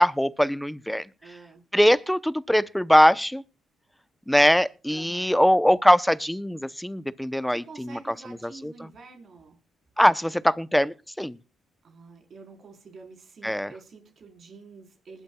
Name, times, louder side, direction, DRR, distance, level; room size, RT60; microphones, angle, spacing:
voice 1, 0.0-1.1 1.7-3.4 4.3-8.0 8.4-8.7 10.0-11.4 13.4-13.7, equal, 5° left, 0.7 m, -21 dB
voice 2, 1.2-1.6 4.9-5.3 7.5-9.6 11.8-15.2, right 4 dB, 55° right, 4.0 m, -47 dB
20.5 x 11.0 x 2.3 m
cardioid pair, 90°, 0 cm